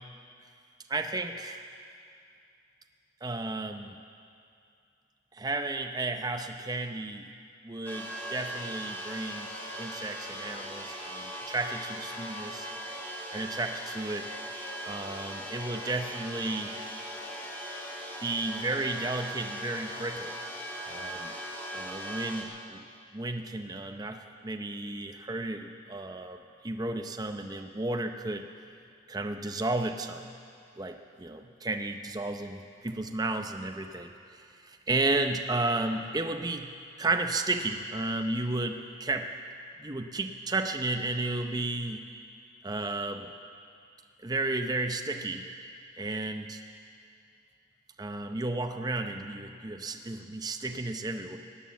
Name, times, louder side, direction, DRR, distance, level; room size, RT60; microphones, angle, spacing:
voice 1, 0.9-1.6 3.2-4.0 5.3-7.3 7.6-9.5 9.8-12.7 13.3-14.3 14.9-16.7 18.2-20.4 20.9-21.4 21.7-22.8 23.1-26.4 26.6-28.4 29.1-30.3 30.8-34.1 34.6-39.3 39.8-42.0 42.6-43.3 44.2-45.5 45.9-46.6 48.0-51.4, right 2 dB, 20° right, 5 dB, 0.6 m, -33 dB
sound 1, 7.9-22.4, equal, 10° left, 2.0 m, -39 dB
18.5 x 9.4 x 7.2 m, 2.4 s
head